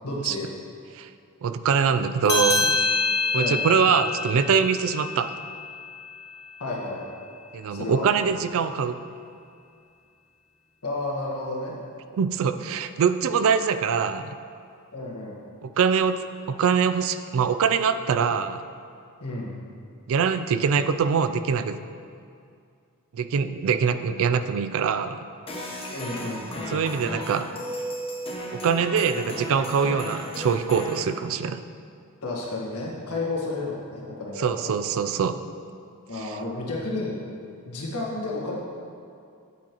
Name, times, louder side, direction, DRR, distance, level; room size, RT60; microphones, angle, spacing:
voice 1, 0.0-0.5 3.3-3.6 6.6-7.0 7.7-8.1 10.8-11.8 14.9-15.4 19.2-19.6 25.9-26.8 32.2-34.7 36.1-37.2 37.6-38.6, left 2 dB, 75° left, -3 dB, 1.6 m, -31 dB
voice 2, 1.4-2.8 3.3-5.3 7.5-9.0 12.2-14.4 15.6-16.2 16.5-18.6 20.1-21.8 23.1-25.2 26.7-27.5 28.5-31.6 34.4-35.4 36.2-36.4, right 6 dB, 65° right, 10 dB, 0.4 m, -23 dB
sound 1, 2.3-7.2, left 4 dB, 50° left, 1.3 m, -27 dB
sound 2, 25.5-31.0, equal, 25° left, 1.0 m, -35 dB
8.6 x 8.4 x 3.0 m, 2.4 s
head